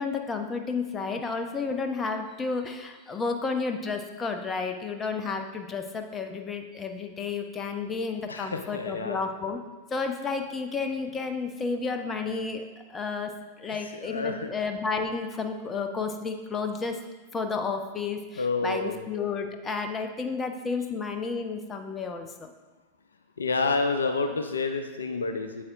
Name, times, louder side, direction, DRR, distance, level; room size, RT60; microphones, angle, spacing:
voice 1, 0.0-9.6 9.9-12.6 12.9-13.3 13.6-17.0 17.3-22.5, left 4 dB, 20° left, 5 dB, 0.7 m, -31 dB
voice 2, 8.3-9.2 14.0-14.5 18.4-19.0 23.4-25.6, left 3 dB, 70° left, 7 dB, 0.5 m, -29 dB
8.4 x 7.7 x 2.5 m, 1.2 s
figure-of-eight pair, 90°, 0 cm